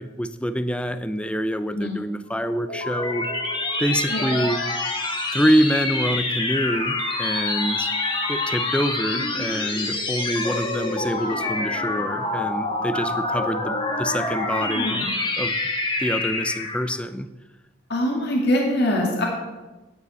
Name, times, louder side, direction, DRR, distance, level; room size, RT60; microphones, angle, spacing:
voice 1, 0.0-3.3 3.8-4.6 5.3-7.9 8.3-15.1 15.4-15.5 16.0-17.3, equal, 5° left, 12 dB, 0.4 m, -25 dB
sound 1, 2.3-17.0, left 2 dB, 25° left, 1.5 m, -27 dB
voice 2, 13.4-15.1 17.9-19.3, left 1 dB, 55° left, -1 dB, 2.2 m, -25 dB
10.0 x 8.3 x 6.9 m, 1.1 s
head